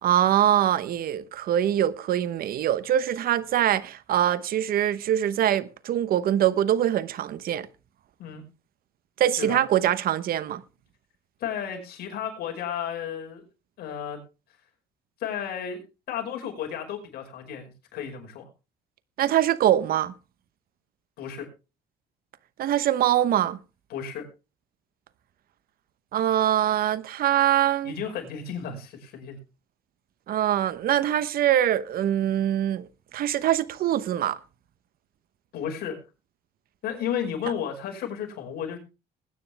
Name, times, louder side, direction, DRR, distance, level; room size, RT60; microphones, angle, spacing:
voice 1, 0.0-7.7 9.2-10.6 19.2-20.1 22.6-23.6 26.1-27.9 30.3-34.4, right 11 dB, 60° right, 1.0 m, -23 dB
voice 2, 11.4-13.4 13.8-14.2 15.2-15.8 16.1-18.5 21.2-21.5 23.9-24.3 27.8-29.4 35.5-36.0 36.8-38.8, left 8 dB, 70° left, 5.4 m, -33 dB
20.5 x 9.5 x 3.4 m
cardioid pair, 110°, 17 cm